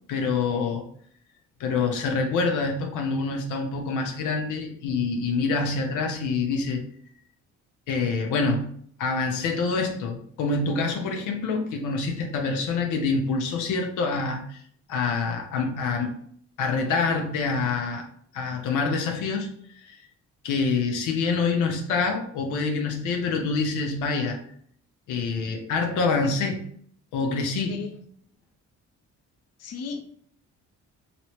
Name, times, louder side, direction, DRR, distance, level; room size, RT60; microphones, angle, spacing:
voice 1, 0.1-0.8 1.6-6.8 7.9-8.7 9.0-14.6 14.9-16.2 16.6-18.1 18.3-20.0 20.4-24.4 25.1-26.6 27.1-27.8, left 4 dB, 90° left, 2 dB, 0.7 m, -26 dB
voice 2, 29.6-30.0, left 6 dB, 55° left, 4 dB, 0.7 m, -34 dB
3.0 x 2.9 x 3.0 m, 0.62 s
cardioid pair, 90°, 30 cm